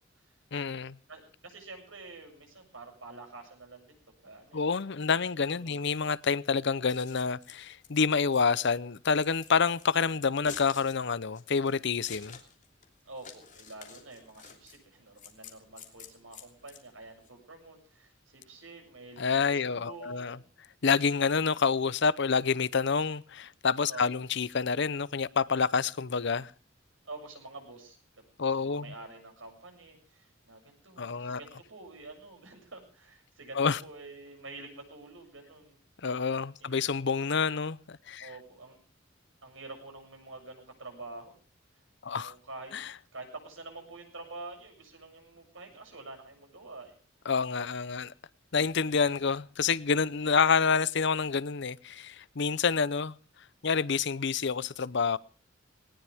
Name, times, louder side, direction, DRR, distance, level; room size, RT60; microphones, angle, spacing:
voice 1, 0.5-1.0 4.5-12.4 19.2-20.4 20.8-26.5 28.4-28.9 31.0-31.4 33.5-33.8 36.0-38.3 42.0-42.3 42.7-42.9 47.3-48.1 48.5-53.2 53.6-55.2, left 5 dB, 65° left, 0.7 m, -28 dB
voice 2, 1.1-3.9 4.2-4.7 5.5-5.7 13.0-20.5 23.9-24.0 27.0-35.8 36.6-36.7 38.2-38.8 39.4-41.3 42.1-42.8 43.1-47.0, right 3 dB, 85° right, 7.4 m, -47 dB
Scissors, 6.8-17.3, left 7 dB, 40° left, 3.0 m, -50 dB
19.5 x 19.0 x 3.5 m
head